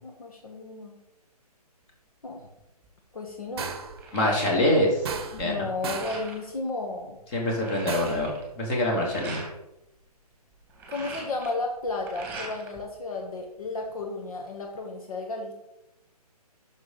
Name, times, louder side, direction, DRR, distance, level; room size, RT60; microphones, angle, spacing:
voice 1, 0.0-1.0 2.2-2.4 3.1-3.7 5.3-7.2 10.9-15.5, left 3 dB, 60° left, 2 dB, 1.4 m, -33 dB
sound 1, 2.6-2.9 3.3-5.0 5.3-6.5 7.0-7.1 7.3-9.5 10.5-12.8 13.1-14.0, right 3 dB, 10° right, 2.2 m, -42 dB
sound 2, 3.6-4.0 5.0-5.6 5.8-6.2 7.9-8.3, right 6 dB, 40° right, 0.9 m, -35 dB
voice 2, 4.1-5.0 5.4-5.7 7.3-9.4, left 1 dB, 25° left, -1 dB, 2.5 m, -25 dB
9.5 x 6.4 x 4.0 m, 0.89 s
figure-of-eight pair, 135°, 20 cm